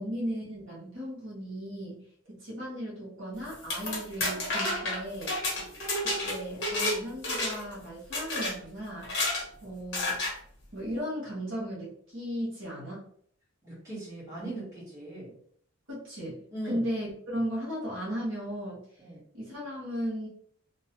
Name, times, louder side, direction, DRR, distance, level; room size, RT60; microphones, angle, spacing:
voice 1, 0.0-5.4 6.0-9.1 9.6-10.2 10.7-13.1 15.9-18.8 19.3-20.3, equal, 70° right, -6 dB, 1.4 m, -36 dB
sound 1, 3.5-7.0 7.2-7.7 8.1-8.5 9.0-9.4 9.9-10.3, left 2 dB, 60° left, 1.0 m, -30 dB
voice 2, 13.6-15.3 16.5-16.9 19.0-19.2, right 1 dB, 15° right, -9 dB, 1.4 m, -40 dB
3.0 x 2.2 x 2.8 m, 0.62 s
head